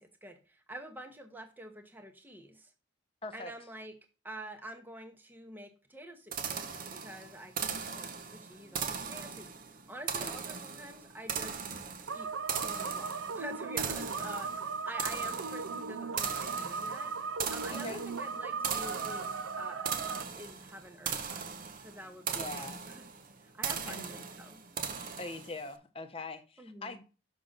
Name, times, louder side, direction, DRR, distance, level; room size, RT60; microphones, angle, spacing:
voice 1, 0.0-2.7 3.3-3.9 4.2-11.7 12.1-12.3 12.6-17.1 17.5-20.0 20.3-23.1 23.5-24.6 26.6-27.0, right 1 dB, 10° right, 0.9 m, -47 dB
sound 1, 6.3-25.7, right 6 dB, 45° right, 0.8 m, -39 dB
sound 2, 12.1-20.2, right 5 dB, 80° right, 0.6 m, -37 dB
voice 2, 17.7-18.0 22.3-22.8 23.8-24.2 25.2-27.0, left 3 dB, 30° left, 0.8 m, -42 dB
6.4 x 5.8 x 3.9 m
head